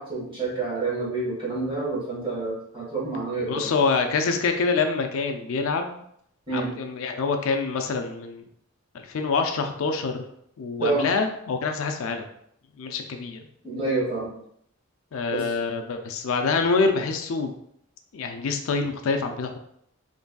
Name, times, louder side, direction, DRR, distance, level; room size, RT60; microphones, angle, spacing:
voice 1, 0.0-3.7 6.5-6.7 10.8-11.0 13.6-14.3 15.3-15.5, right 3 dB, 25° right, -6 dB, 1.4 m, -28 dB
voice 2, 3.5-6.0 6.5-8.5 8.9-10.2 10.6-12.3 12.8-13.5 15.1-17.5 18.1-19.6, left 4 dB, 70° left, 5 dB, 0.4 m, -26 dB
3.8 x 3.2 x 2.2 m, 0.70 s
head